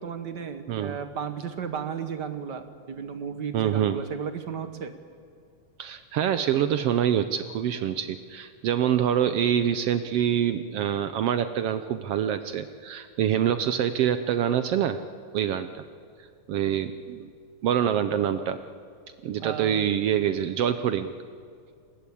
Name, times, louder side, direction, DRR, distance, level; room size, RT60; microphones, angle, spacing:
voice 1, 0.0-4.9 19.4-19.9, right 7 dB, 55° right, 9 dB, 1.3 m, -34 dB
voice 2, 3.5-4.0 5.8-15.0 15.3-15.8 16.5-17.3 17.6-18.6 19.2-21.1, right 9 dB, 70° right, 10 dB, 1.5 m, -25 dB
29.5 x 20.5 x 8.4 m, 2.3 s
omnidirectional pair, 3.4 m